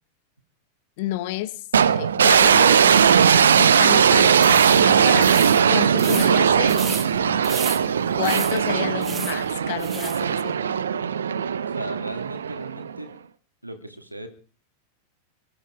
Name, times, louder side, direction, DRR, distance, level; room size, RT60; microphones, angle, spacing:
voice 1, 1.0-7.5 8.2-10.8, left 15 dB, 50° left, 1.2 m, -31 dB
sound 1, 1.7-13.0, right 7 dB, 70° right, 0.9 m, -19 dB
sound 2, 4.4-10.2, right 6 dB, 20° right, 1.4 m, -35 dB
voice 2, 11.7-13.1 13.6-14.3, right 1 dB, 85° right, 2.8 m, -36 dB
22.5 x 11.5 x 4.8 m
figure-of-eight pair, 90°, 0 cm